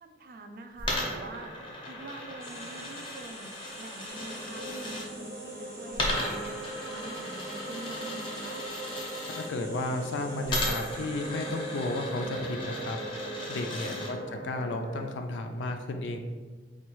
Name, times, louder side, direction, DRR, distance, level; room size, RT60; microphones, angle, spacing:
voice 1, 0.0-1.5 1.9-3.5 3.8-6.6 6.9-8.6 13.9-14.3, right 2 dB, 50° right, 6 dB, 0.3 m, -45 dB
Coin (dropping), 0.8-5.1 5.9-9.5 10.5-14.1, left 1 dB, 25° left, 0.6 m, -36 dB
sound 1, 2.4-12.4, right 1 dB, 15° right, 0.6 m, -49 dB
sound 2, 4.1-15.1, right 2 dB, 85° right, 0.8 m, -40 dB
voice 2, 9.3-13.0 13.5-14.2 14.4-16.2, left 2 dB, 80° left, 5 dB, 0.4 m, -33 dB
4.4 x 2.3 x 3.0 m, 1.4 s
head